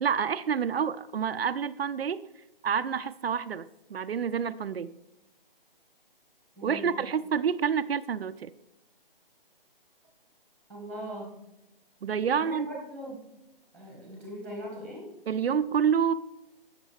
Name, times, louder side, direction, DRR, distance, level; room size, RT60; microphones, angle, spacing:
voice 1, 0.0-2.3 2.6-4.9 6.6-8.5 12.0-12.7 15.3-16.1, right 7 dB, 85° right, 11 dB, 0.6 m, -28 dB
voice 2, 6.6-7.1 10.7-11.4 12.3-13.2 13.7-15.1, equal, 5° left, -3 dB, 1.4 m, -40 dB
16.5 x 6.6 x 3.3 m, 0.90 s
hypercardioid pair, 170°, 29 cm